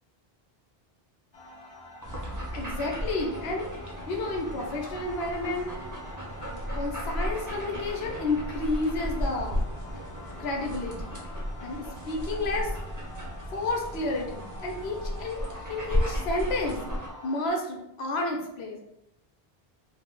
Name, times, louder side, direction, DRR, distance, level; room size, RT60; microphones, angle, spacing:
sound 1, 1.3-17.5, left 1 dB, 45° left, 0.5 m, -47 dB
sound 2, 2.0-17.1, equal, 25° right, 0.5 m, -34 dB
voice 1, 2.5-3.7 4.1-5.7 6.7-9.6 10.4-11.2 11.6-12.8 13.5-16.8 17.2-18.8, left 2 dB, 80° left, 1 dB, 0.9 m, -31 dB
2.7 x 2.0 x 3.7 m, 0.84 s
omnidirectional pair, 1.1 m